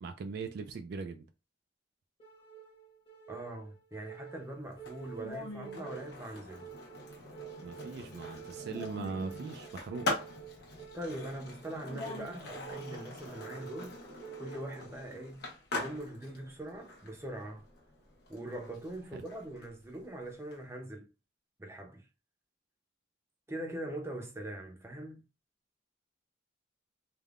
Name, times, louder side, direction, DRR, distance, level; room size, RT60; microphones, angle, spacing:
voice 1, 0.0-1.3 7.6-10.1 19.1-19.2, right 4 dB, 60° right, 0.3 m, -40 dB
sound 1, 2.2-15.2, right 3 dB, 30° left, 0.9 m, -47 dB
voice 2, 3.3-6.7 10.9-13.9 14.4-15.5 15.7-17.7 18.3-21.1 21.6-22.1 23.5-25.2, right 1 dB, 15° right, 0.6 m, -42 dB
Skateboard, 4.7-20.6, left 2 dB, 60° left, 0.9 m, -43 dB
3.4 x 2.1 x 2.4 m
head